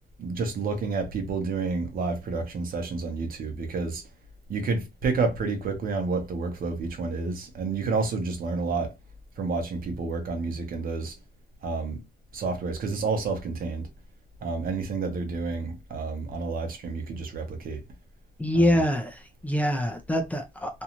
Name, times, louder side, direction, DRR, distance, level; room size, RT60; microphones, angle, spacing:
voice 1, 0.2-4.1 4.5-8.9 9.4-11.2 11.6-12.0 12.3-13.9 14.4-17.8 18.5-18.8, right 4 dB, 65° right, 0.8 m, -30 dB
voice 2, 18.4-20.8, equal, 10° left, 0.5 m, -25 dB
2.6 x 2.3 x 2.9 m
cardioid pair, 140°, 16 cm